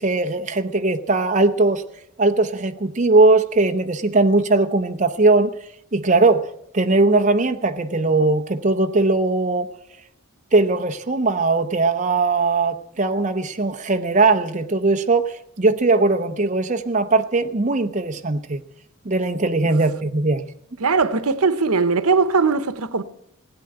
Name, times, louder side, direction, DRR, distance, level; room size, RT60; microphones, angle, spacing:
voice 1, 0.0-1.8 2.2-5.5 5.9-9.7 10.5-18.6 19.0-20.5, right 3 dB, 35° right, 0.7 m, -19 dB
voice 2, 20.8-23.0, right 4 dB, 85° right, 0.9 m, -19 dB
17.0 x 8.8 x 7.9 m
head